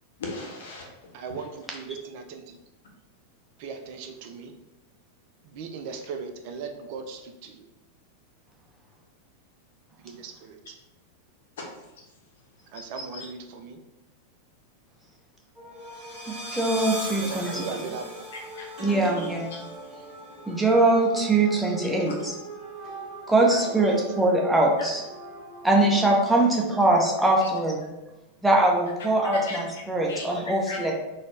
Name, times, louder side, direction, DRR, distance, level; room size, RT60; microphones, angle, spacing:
voice 1, 0.2-0.9 12.7-12.9 13.1-13.3 18.3-18.7 19.2-19.6 22.1-22.2 24.8-24.9 27.4-27.5 29.3-29.6 30.1-30.3 30.7-30.9, left 3 dB, 60° left, 0 dB, 0.7 m, -38 dB
voice 2, 1.1-2.6 3.6-4.6 5.4-7.7 10.0-10.8 12.7-13.8 17.1-18.3 21.6-21.9 23.6-24.0 26.3-26.4, right 5 dB, 45° right, 6 dB, 0.3 m, -38 dB
sound 1, 15.6-26.1, right 1 dB, 30° right, 1.0 m, -39 dB
voice 3, 16.3-17.6 18.8-19.4 20.5-22.3 23.3-25.0 25.6-27.8 28.4-30.9, right 2 dB, 5° right, -2 dB, 0.7 m, -22 dB
3.9 x 2.0 x 3.2 m, 0.98 s
figure-of-eight pair, 90°, 0 cm